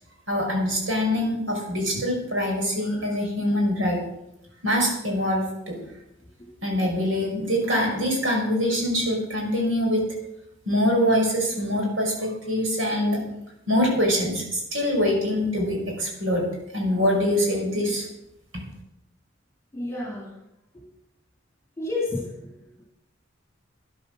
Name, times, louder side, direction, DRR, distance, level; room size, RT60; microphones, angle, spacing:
voice 1, 0.3-4.0 4.6-5.8 6.6-10.1 10.7-13.2 13.7-16.5 16.7-18.1, equal, 90° right, 0 dB, 5.4 m, -24 dB
voice 2, 19.7-20.3 20.7-20.8 21.8-22.5, left 2 dB, 15° left, -4 dB, 3.5 m, -30 dB
12.0 x 11.0 x 6.4 m, 0.86 s
head